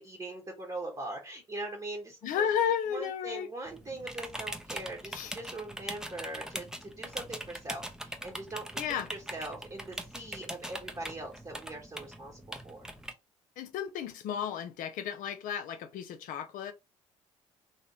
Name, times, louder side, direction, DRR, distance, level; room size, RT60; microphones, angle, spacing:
voice 1, 0.0-2.5 2.9-8.8 9.1-12.9, right 2 dB, 25° right, 1.1 m, -41 dB
voice 2, 2.2-3.5 5.1-5.3 8.8-9.1 13.6-16.7, left 8 dB, 55° left, 0.6 m, -33 dB
sound 1, 3.7-13.1, right 1 dB, 5° right, 0.6 m, -42 dB
2.9 x 2.8 x 2.8 m
figure-of-eight pair, 50°, 16 cm